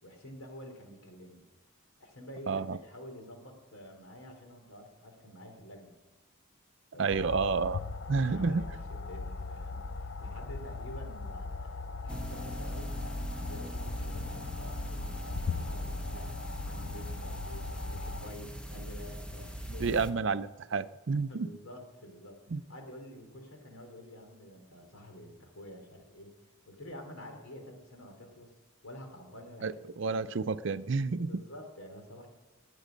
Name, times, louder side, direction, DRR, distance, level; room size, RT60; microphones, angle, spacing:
voice 1, 0.0-1.4 2.0-5.9 6.9-7.0 8.1-12.9 13.3-16.3 16.6-20.0 21.3-22.4 22.7-28.5 28.8-29.8 30.1-30.3 31.2-32.3, equal, 80° left, 3 dB, 3.4 m, -49 dB
voice 2, 2.5-2.8 7.0-7.8 8.1-8.6 19.8-21.5 22.5-22.6 29.6-31.3, right 4 dB, 60° right, 14 dB, 0.5 m, -30 dB
sound 1, 7.1-18.3, left 3 dB, 55° left, 0.5 m, -39 dB
sound 2, 12.1-20.1, equal, 5° left, 0.8 m, -41 dB
20.0 x 9.2 x 5.2 m, 1.2 s
head